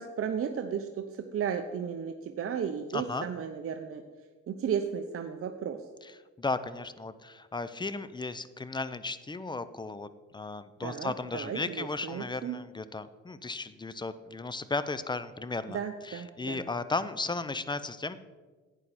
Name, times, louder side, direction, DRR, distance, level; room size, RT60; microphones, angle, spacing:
voice 1, 0.0-4.0 4.5-5.9 10.8-12.6 15.7-16.6, right 7 dB, 45° right, 6 dB, 0.7 m, -34 dB
voice 2, 2.9-3.3 6.4-10.1 10.3-15.8 16.0-18.2, left 3 dB, 15° left, 14 dB, 0.5 m, -35 dB
11.0 x 8.9 x 4.2 m, 1.3 s
cardioid pair, 90°, 30 cm